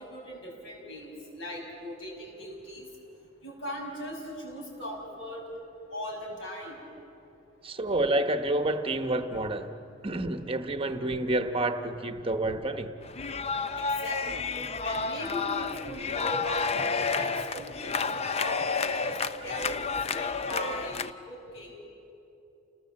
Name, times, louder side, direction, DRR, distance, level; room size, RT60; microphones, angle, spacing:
voice 1, 0.0-2.9 3.4-5.4 5.9-6.8 13.8-14.5 14.8-18.6 18.9-21.8, left 1 dB, 65° left, -1 dB, 6.2 m, -39 dB
voice 2, 7.6-9.7 10.0-12.9 16.2-16.3, right 2 dB, 25° right, 8 dB, 1.1 m, -29 dB
sound 1, 13.0-21.1, left 4 dB, 30° left, 0.5 m, -31 dB
29.0 x 19.5 x 7.6 m, 2.8 s
head